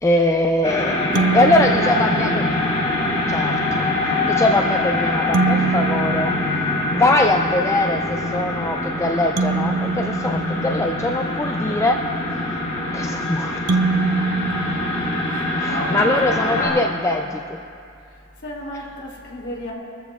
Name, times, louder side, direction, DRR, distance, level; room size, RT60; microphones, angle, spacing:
voice 1, 0.0-1.0 1.3-2.4 3.3-3.9 4.2-6.3 6.9-12.1 12.9-13.6 15.6-17.4, left 1 dB, 15° left, 3 dB, 0.4 m, -21 dB
sound 1, 0.6-16.7, left 2 dB, 30° left, 3.6 m, -24 dB
voice 2, 1.1-2.5 15.3-16.8 17.1-17.3 18.1-19.7, left 1 dB, 55° left, -3 dB, 2.8 m, -31 dB
sound 2, 1.1-2.8 5.3-7.4 9.4-11.5 13.7-15.7, right 4 dB, 75° right, 0.4 m, -25 dB
22.0 x 14.0 x 2.3 m, 2.4 s
head